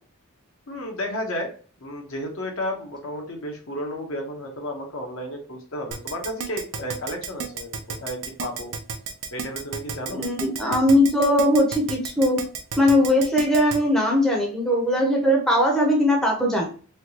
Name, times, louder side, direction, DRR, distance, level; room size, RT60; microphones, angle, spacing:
voice 1, 0.7-1.5 1.8-8.7 9.3-10.2, equal, 65° left, 2 dB, 0.8 m, -32 dB
Keyboard (musical), 5.9-13.8, right 6 dB, 85° right, 0.5 m, -32 dB
voice 2, 10.1-12.4 12.8-16.6, left 1 dB, 5° left, -2 dB, 0.6 m, -20 dB
3.3 x 2.3 x 2.8 m, 0.40 s
head